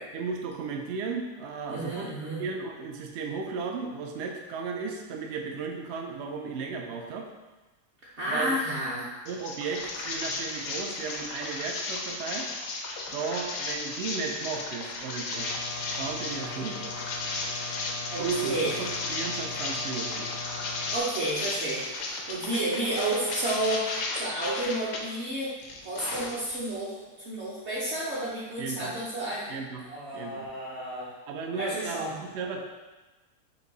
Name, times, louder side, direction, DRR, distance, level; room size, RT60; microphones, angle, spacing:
voice 1, 0.1-2.1 2.4-7.3 8.3-8.6 9.3-12.5 13.1-15.5 16.0-17.1 18.2-20.3 28.6-28.9 29.5-29.8 30.1-30.5 31.3-32.6, right 5 dB, 80° right, 2 dB, 0.6 m, -35 dB
voice 2, 1.7-2.4 8.2-9.1 18.1-18.8 20.9-25.5 25.8-29.5 29.8-31.1 31.6-32.2, right 1 dB, 55° right, -8 dB, 0.8 m, -31 dB
sound 1, 9.3-25.0 25.4-26.7, left 3 dB, 85° left, 1.3 m, -35 dB
sound 2, 15.3-21.0, left 4 dB, 65° left, 0.8 m, -40 dB
4.5 x 2.6 x 3.8 m, 1.2 s
omnidirectional pair, 1.8 m